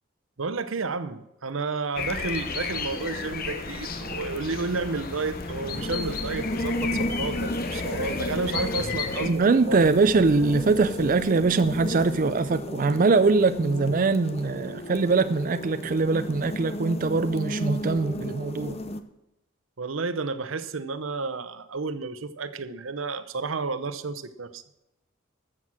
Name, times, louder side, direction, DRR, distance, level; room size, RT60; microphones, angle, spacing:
voice 1, 0.4-10.0 19.8-24.6, right 4 dB, 80° right, 0.9 m, -31 dB
sound 1, 2.0-9.3, left 5 dB, 45° left, 1.2 m, -33 dB
sound 2, 2.0-19.0, left 1 dB, 30° left, 0.7 m, -34 dB
voice 2, 9.2-18.8, right 4 dB, 40° right, 0.4 m, -22 dB
13.5 x 7.4 x 6.2 m
head